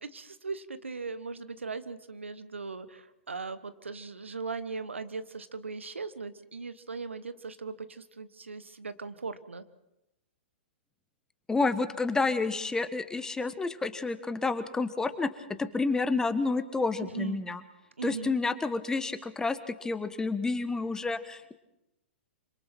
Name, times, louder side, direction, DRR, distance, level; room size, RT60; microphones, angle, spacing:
voice 1, 0.0-9.6 17.0-17.4 18.0-18.3, right 4 dB, 85° right, 13 dB, 1.3 m, -39 dB
voice 2, 11.5-15.3 15.6-17.6 18.0-21.5, left 3 dB, 10° left, 12 dB, 1.3 m, -29 dB
26.5 x 26.0 x 4.5 m, 0.89 s
figure-of-eight pair, 110°, 6 cm